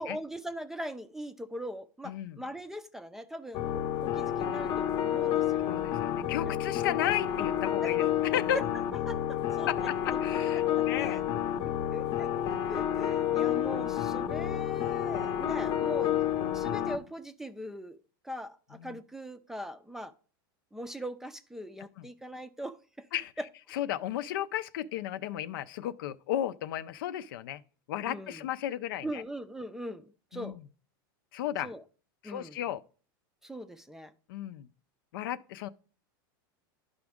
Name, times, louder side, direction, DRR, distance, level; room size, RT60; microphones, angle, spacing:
voice 1, 0.0-5.7 6.5-6.6 6.9-7.0 7.8-7.9 8.5-8.6 9.1-9.9 10.7-11.2 11.9-16.2 16.5-18.0 18.2-20.1 20.7-23.1 28.1-28.4 29.0-30.6 31.6-31.8 32.2-32.6 33.4-34.1, right 1 dB, 5° right, 0.5 m, -41 dB
voice 2, 2.0-2.4 5.7-8.6 9.7-11.2 13.2-13.3 16.0-16.1 18.7-19.0 22.0-22.1 23.1-23.3 23.7-27.6 27.9-29.2 30.3-30.6 31.3-31.7 32.2-32.8 34.3-34.7 35.1-35.7, left 12 dB, 75° left, 0.5 m, -34 dB
sound 1, 3.5-17.0, left 11 dB, 40° left, 0.8 m, -30 dB
11.5 x 5.0 x 3.6 m
supercardioid pair, 135°, 12 cm